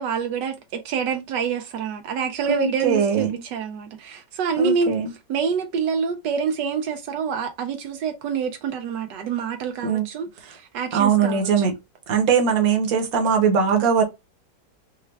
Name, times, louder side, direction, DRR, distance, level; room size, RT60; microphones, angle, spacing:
voice 1, 0.0-4.9 5.3-11.6, right 6 dB, 85° right, 1.3 m, -27 dB
voice 2, 2.5-3.4 4.6-5.1 9.8-10.0 10.9-11.7 12.1-14.0, right 6 dB, 60° right, 1.4 m, -20 dB
4.5 x 2.3 x 3.1 m
omnidirectional pair, 1.9 m